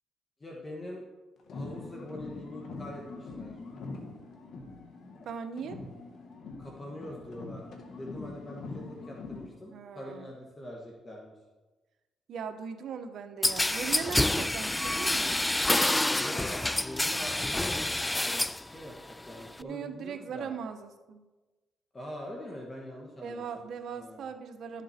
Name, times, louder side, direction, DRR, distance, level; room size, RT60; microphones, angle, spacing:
voice 1, 0.4-1.0 1.5-3.6 6.6-11.3 16.1-20.5 21.9-23.6 24.0-24.3, left 1 dB, 25° left, -1 dB, 1.5 m, -44 dB
sound 1, 1.4-5.3 5.6-9.6, left 3 dB, 65° left, 1.7 m, -43 dB
voice 2, 5.2-5.8 9.7-10.3 12.3-15.4 19.6-21.2 23.2-24.8, right 6 dB, 65° right, 8 dB, 1.0 m, -39 dB
sound 2, 13.4-18.6 19.0-19.6, left 1 dB, 10° left, 0.3 m, -28 dB
12.5 x 7.3 x 4.4 m, 1.2 s
cardioid pair, 90°, 0 cm